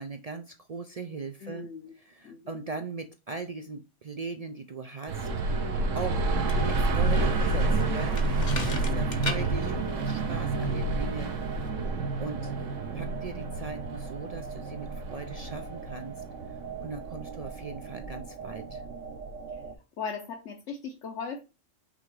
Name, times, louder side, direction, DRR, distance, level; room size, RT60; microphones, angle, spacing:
voice 1, 0.0-1.7 2.0-5.3 5.6-6.2 6.6-11.3 12.2-12.5 12.9-18.8, right 4 dB, 55° right, 0.4 m, -39 dB
voice 2, 1.4-1.9 2.2-2.7 20.0-21.4, left 5 dB, 70° left, 1.2 m, -38 dB
sound 1, 5.1-19.7, right 3 dB, 80° right, 1.3 m, -30 dB
sound 2, 6.2-11.7, left 3 dB, 40° left, 1.0 m, -39 dB
5.8 x 3.5 x 4.7 m
omnidirectional pair, 1.3 m